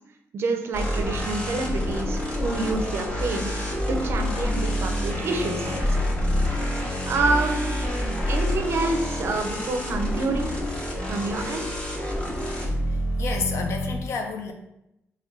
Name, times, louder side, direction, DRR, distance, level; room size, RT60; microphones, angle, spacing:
voice 1, 0.3-3.5 3.9-6.0 7.1-7.8 8.2-10.5 11.1-11.7, right 3 dB, 55° right, 5 dB, 0.5 m, -28 dB
sound 1, 0.7-14.0, left 1 dB, 25° left, 0.8 m, -27 dB
voice 2, 12.9-14.5, left 4 dB, 65° left, 5 dB, 0.5 m, -31 dB
3.6 x 2.2 x 3.7 m, 0.84 s
cardioid pair, 135°, 5 cm